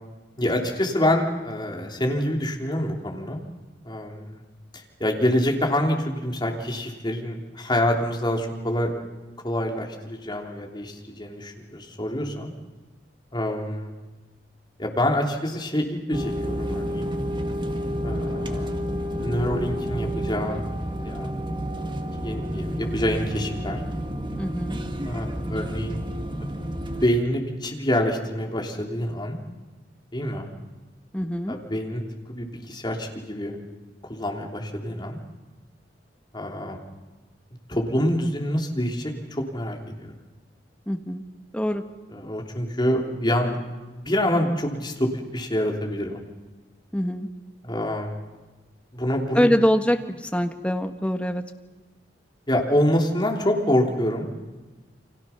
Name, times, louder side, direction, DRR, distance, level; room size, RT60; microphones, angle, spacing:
voice 1, 0.4-3.4 3.8-4.4 5.0-8.9 9.4-12.5 13.3-13.9 14.8-17.1 18.0-18.7 19.2-20.6 21.0-21.3 21.7-23.8 25.0-26.0 27.0-29.4 30.1-30.4 31.5-32.0 32.3-33.6 34.1-35.2 36.3-36.8 37.7-40.1 42.1-46.2 47.6-48.1 48.9-49.5 52.5-54.3, left 1 dB, 25° left, 1 dB, 3.4 m, -26 dB
sound 1, 16.1-27.1, equal, 25° right, 1.7 m, -30 dB
voice 2, 24.4-24.8 31.1-31.5 40.9-41.2 41.5-41.8 46.9-47.3 49.3-51.4, equal, 5° left, 6 dB, 1.4 m, -24 dB
29.5 x 25.0 x 5.9 m, 1.2 s
head